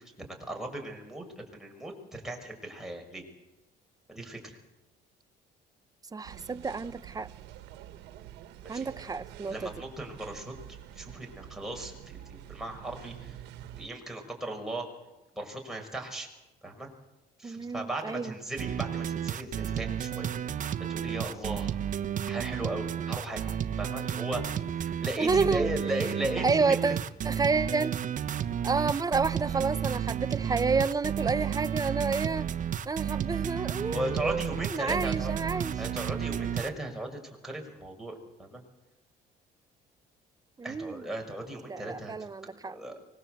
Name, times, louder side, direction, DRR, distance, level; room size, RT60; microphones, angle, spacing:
voice 1, 0.0-3.2 4.1-4.6 8.6-8.9 9.5-10.5 10.9-13.4 13.7-14.9 15.3-16.3 16.6-16.9 17.4-20.3 20.9-21.8 22.3-26.8 33.9-35.3 35.8-38.6 40.6-42.1 42.4-42.9, right 1 dB, ahead, 6.0 m, -37 dB
voice 2, 6.1-7.3 8.7-9.7 17.4-18.3 25.2-25.8 26.4-28.0 28.6-32.5 32.9-35.7 40.6-41.0 41.7-42.8, right 4 dB, 20° right, 0.8 m, -30 dB
sound 1, 6.2-13.9, right 11 dB, 90° right, 1.4 m, -47 dB
sound 2, 18.6-36.7, right 9 dB, 50° right, 1.2 m, -32 dB
25.0 x 20.5 x 8.0 m
cardioid pair, 110°, 17 cm